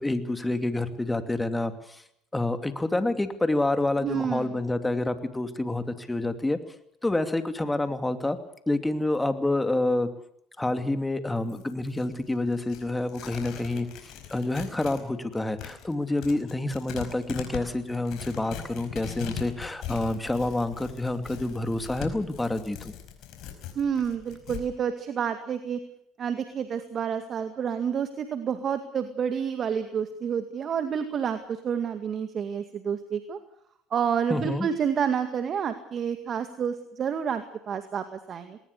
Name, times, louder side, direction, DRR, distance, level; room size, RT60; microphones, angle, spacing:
voice 1, 0.0-2.0 2.3-6.6 7.0-8.4 8.7-10.1 10.6-22.9 34.3-34.7, left 2 dB, 10° left, 9 dB, 2.6 m, -28 dB
voice 2, 4.0-4.5 23.8-25.8 26.2-33.4 33.9-38.6, right 7 dB, 45° right, 8 dB, 2.0 m, -29 dB
Tearing, 11.4-15.0 15.3-24.6, left 9 dB, 65° left, 5.0 m, -41 dB
20.0 x 19.0 x 8.4 m, 0.71 s
supercardioid pair, 80°, 0 cm